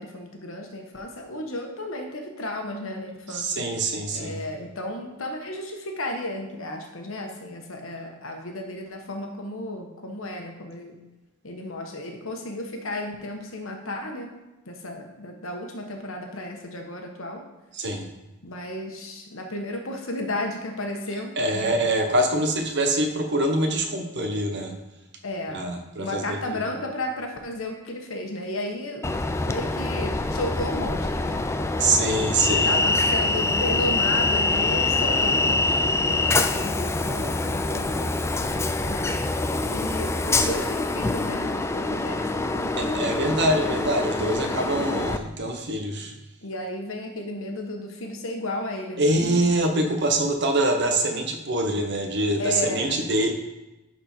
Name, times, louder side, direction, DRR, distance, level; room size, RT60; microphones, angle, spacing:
voice 1, 0.0-3.7 4.1-10.9 11.4-14.3 14.6-17.4 18.4-21.8 25.2-25.7 26.0-29.1 29.5-31.4 32.5-39.2 39.7-43.2 43.8-45.2 46.4-49.1 52.4-53.0, left 1 dB, 65° left, 3 dB, 1.3 m, -33 dB
voice 2, 3.3-4.4 17.7-18.1 21.4-24.7 25.5-26.7 31.8-32.8 42.8-46.1 49.0-53.3, right 1 dB, 55° right, 5 dB, 1.0 m, -24 dB
Train, 29.0-45.2, left 2 dB, 15° left, 0.3 m, -25 dB
10.5 x 4.4 x 4.4 m, 1.0 s
head